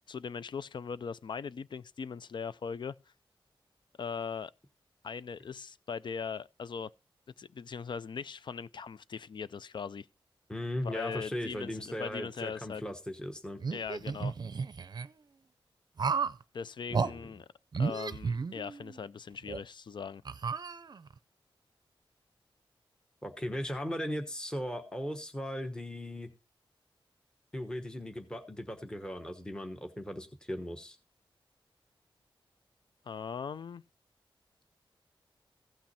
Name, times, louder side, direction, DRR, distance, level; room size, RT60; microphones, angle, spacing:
voice 1, 0.1-2.9 4.0-4.5 5.0-6.9 7.4-10.1 10.8-12.8 13.7-14.4 16.5-17.5 17.8-20.2 33.1-33.8, left 6 dB, 55° left, 0.4 m, -40 dB
voice 2, 10.5-13.6 16.9-17.3 23.2-26.3 27.5-31.0, equal, 10° left, 1.1 m, -38 dB
sound 1, 13.6-15.1 16.0-16.4 16.9-17.1 17.7-19.0 19.5-19.6 20.3-21.2, right 5 dB, 50° right, 0.5 m, -33 dB
15.5 x 6.0 x 4.2 m
wide cardioid pair, 125°, 9 cm